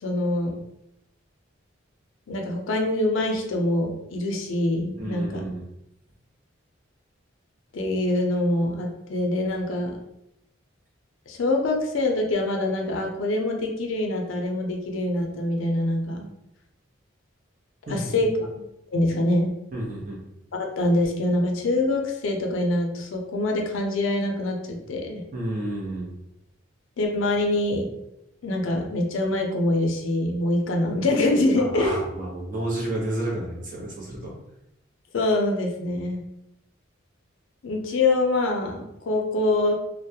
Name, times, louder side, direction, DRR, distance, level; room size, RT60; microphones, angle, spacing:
voice 1, 0.0-0.5 2.3-5.4 7.7-10.0 11.3-16.3 17.9-18.5 18.9-19.5 20.6-25.2 27.0-27.9 28.4-32.0 35.1-36.2 37.6-38.8 39.1-39.8, left 2 dB, 75° left, 2 dB, 0.5 m, -24 dB
voice 2, 5.0-5.6 17.9-18.1 19.7-20.2 25.3-26.1 31.6-34.4, right 1 dB, 40° right, -3 dB, 0.7 m, -31 dB
2.3 x 2.0 x 2.7 m, 0.84 s
head